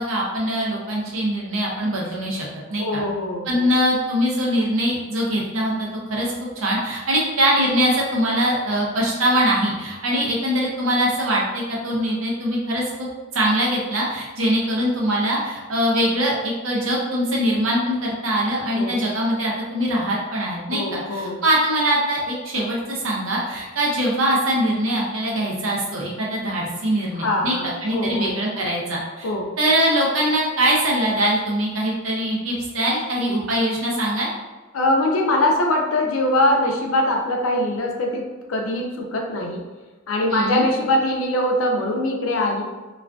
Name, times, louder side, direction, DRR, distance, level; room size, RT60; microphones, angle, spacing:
voice 1, 0.0-3.0 3.5-6.3 6.6-13.1 13.3-29.3 29.6-34.3 40.3-40.6, equal, 90° right, -3 dB, 0.7 m, -22 dB
voice 2, 2.8-3.7 18.7-19.0 20.7-21.4 27.1-28.7 29.2-29.5 34.7-39.7 40.1-42.7, left 1 dB, 85° left, 2 dB, 0.4 m, -22 dB
2.3 x 2.2 x 2.4 m, 1.2 s
head